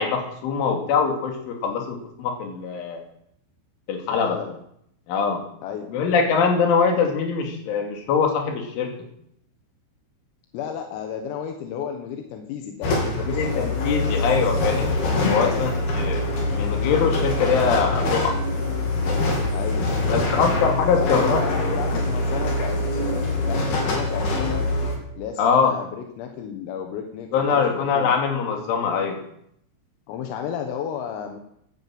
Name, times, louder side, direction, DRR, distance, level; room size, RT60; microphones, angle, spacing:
voice 1, 0.0-3.0 3.9-4.4 5.1-5.4 5.9-8.9 13.2-15.0 15.3-16.2 16.5-18.3 20.1-22.0 25.4-25.7 27.3-29.2, left 6 dB, 70° left, 2 dB, 5.1 m, -23 dB
voice 2, 4.1-4.5 5.6-5.9 10.5-13.7 15.3-15.7 19.5-19.9 20.5-20.6 21.0-24.7 25.1-28.1 30.1-31.4, left 8 dB, 85° left, 4 dB, 4.1 m, -33 dB
sound 1, 12.8-25.0, left 2 dB, 55° left, 5.2 m, -24 dB
16.0 x 11.5 x 7.8 m, 0.73 s
omnidirectional pair, 5.9 m